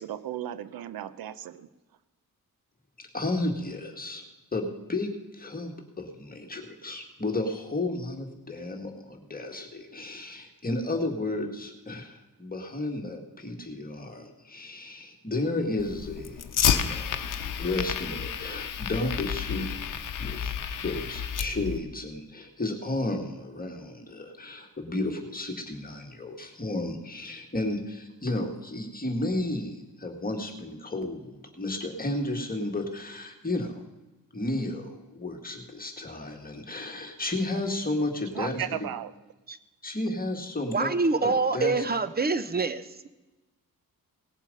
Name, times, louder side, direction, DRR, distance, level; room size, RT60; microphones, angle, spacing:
voice 1, 0.0-1.7 38.3-39.1, right 11 dB, 85° right, 15 dB, 0.7 m, -35 dB
voice 2, 3.0-4.2 4.5-16.5 16.8-20.5 20.8-33.8 34.3-38.7 39.8-41.8, left 2 dB, 25° left, 3 dB, 1.9 m, -33 dB
Fire, 15.8-21.8, left 8 dB, 65° left, 0.9 m, -30 dB
voice 3, 40.7-43.1, right 3 dB, 25° right, 13 dB, 0.9 m, -26 dB
18.5 x 7.4 x 5.4 m, 1.1 s
cardioid pair, 80°, 35 cm